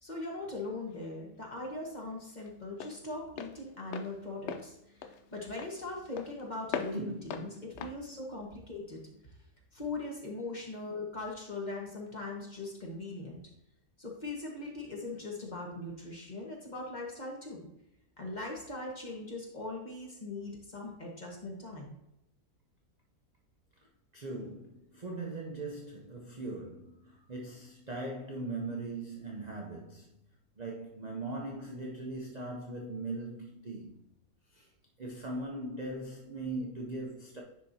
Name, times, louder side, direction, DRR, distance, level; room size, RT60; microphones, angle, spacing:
voice 1, 0.0-9.0 9.7-13.4 14.0-17.7 18.2-21.9, left 2 dB, 30° left, 1.4 m, -40 dB
Walk footsteps, 0.5-9.2, left 7 dB, 65° left, 0.7 m, -43 dB
voice 2, 6.9-7.5 24.1-30.1 30.6-34.0 34.5-34.7 35.0-37.4, right 2 dB, 45° right, 0.5 m, -40 dB
10.0 x 4.6 x 2.7 m
omnidirectional pair, 1.7 m